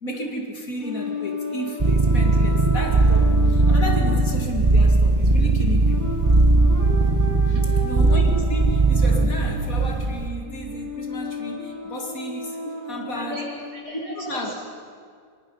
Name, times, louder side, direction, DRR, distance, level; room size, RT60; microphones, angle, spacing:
voice 1, 0.0-6.2 7.8-12.6 12.9-13.4 13.9-14.6, left 1 dB, 50° left, 1 dB, 2.5 m, -32 dB
sound 1, 0.8-13.8, left 3 dB, 10° right, 1.9 m, -34 dB
sound 2, 1.8-10.3, right 3 dB, 25° right, 0.6 m, -18 dB
voice 2, 13.1-13.5 13.7-14.6, equal, 60° right, -4 dB, 6.5 m, -36 dB
25.0 x 21.5 x 5.5 m, 2.1 s
omnidirectional pair, 1.9 m